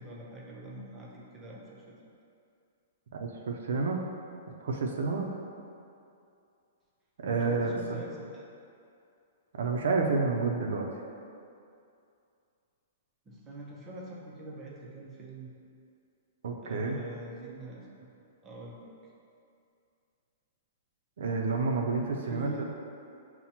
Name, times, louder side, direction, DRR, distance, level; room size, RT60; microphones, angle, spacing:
voice 1, 0.0-2.0 7.2-8.4 13.3-15.5 16.6-17.8 18.4-18.9 22.3-22.6, right 1 dB, 15° right, -4 dB, 0.5 m, -44 dB
voice 2, 3.1-4.0 4.6-5.3 7.2-8.0 9.5-10.9 16.4-17.0 21.2-22.6, right 4 dB, 75° right, 1 dB, 0.4 m, -29 dB
5.7 x 2.0 x 2.8 m, 2.5 s
hypercardioid pair, 155°, 0 cm